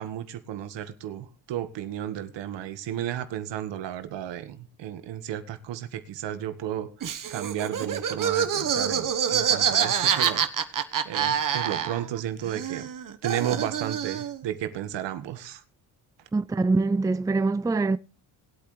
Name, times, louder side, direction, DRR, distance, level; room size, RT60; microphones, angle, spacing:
voice 1, 0.0-12.9 13.2-15.6, right 11 dB, 75° right, 1.6 m, -33 dB
Laughter, 7.0-12.2 12.4-14.4, right 8 dB, 45° right, 1.2 m, -26 dB
voice 2, 16.3-18.0, right 3 dB, 10° right, 0.5 m, -24 dB
19.5 x 8.6 x 3.3 m
supercardioid pair, 70°, 43 cm